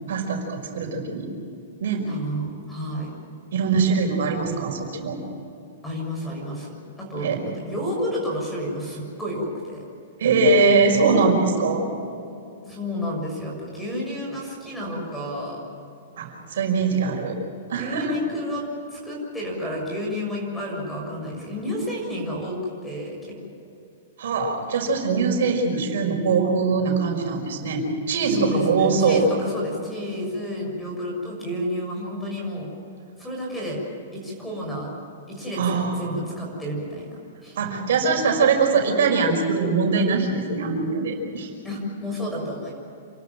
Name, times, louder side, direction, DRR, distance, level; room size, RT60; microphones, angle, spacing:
voice 1, 0.1-1.3 1.8-2.0 3.5-5.2 7.2-7.5 10.2-11.9 16.2-17.4 17.7-18.2 24.2-29.2 35.6-36.1 37.6-41.5, right 4 dB, 70° right, 2 dB, 5.4 m, -22 dB
voice 2, 2.0-3.1 5.8-9.8 12.6-15.6 17.7-18.6 18.9-22.6 22.8-23.3 28.3-32.7 33.2-33.8 34.1-34.9 35.3-37.6 41.6-42.7, equal, 5° left, -2 dB, 6.5 m, -31 dB
29.0 x 13.0 x 9.1 m, 2.6 s
hypercardioid pair, 160°, 0 cm